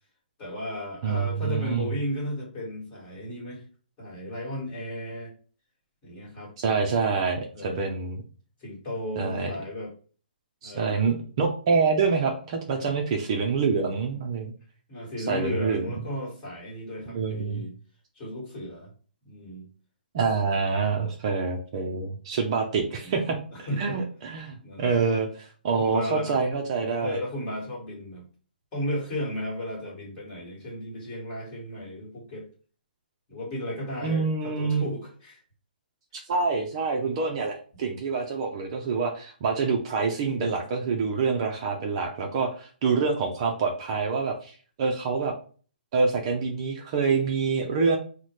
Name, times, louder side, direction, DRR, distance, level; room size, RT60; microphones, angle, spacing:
voice 1, 0.4-3.6 4.0-5.3 6.0-6.5 7.5-7.8 8.6-9.9 10.6-11.2 12.8-13.0 14.9-17.7 18.1-18.9 19.2-19.7 20.8-21.1 23.0-23.2 23.5-24.0 24.6-25.0 25.8-26.4 27.0-28.2 28.7-32.5 33.3-35.4, left 1 dB, 20° left, -4 dB, 1.5 m, -34 dB
voice 2, 1.0-1.9 6.6-8.2 9.2-9.5 10.6-14.5 15.3-15.8 17.1-17.6 20.1-23.4 23.8-27.2 34.0-34.9 36.1-45.3 45.9-48.0, right 4 dB, 30° right, 2 dB, 0.5 m, -26 dB
4.0 x 2.1 x 3.1 m, 0.39 s
hypercardioid pair, 165°, 5 cm